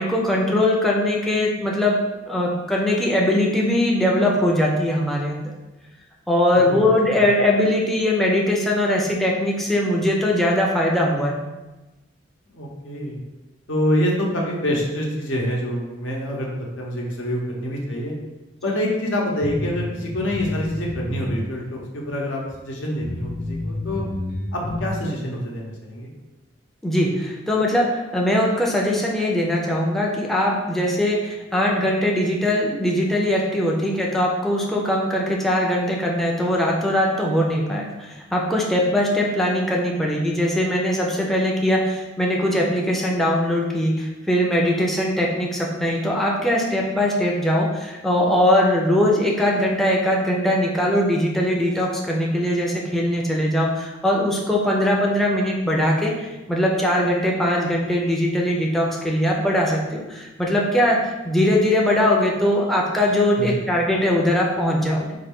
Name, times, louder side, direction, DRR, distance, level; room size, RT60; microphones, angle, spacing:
voice 1, 0.0-2.0 2.3-5.5 6.3-11.4 26.8-65.2, left 1 dB, ahead, -2 dB, 0.4 m, -21 dB
voice 2, 6.5-7.2 12.5-13.2 13.7-18.1 18.6-24.0 24.5-26.1 63.4-63.6, equal, 80° left, -2 dB, 0.9 m, -26 dB
sound 1, 19.4-21.5 21.8-21.9 22.5-22.6 23.0-24.9, left 2 dB, 50° left, 1.0 m, -29 dB
3.8 x 2.5 x 3.5 m, 1.1 s
head